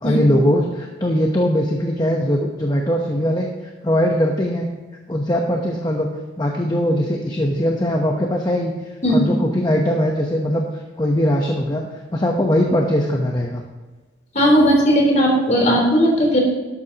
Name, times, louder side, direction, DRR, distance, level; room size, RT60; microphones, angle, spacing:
voice 1, 0.0-3.5 3.8-4.7 5.1-6.1 6.4-8.7 9.1-10.6 11.0-13.6, equal, 20° left, 1 dB, 0.9 m, -20 dB
voice 2, 14.4-16.4, equal, 35° left, -1 dB, 3.5 m, -16 dB
13.0 x 11.5 x 2.9 m, 1.3 s
head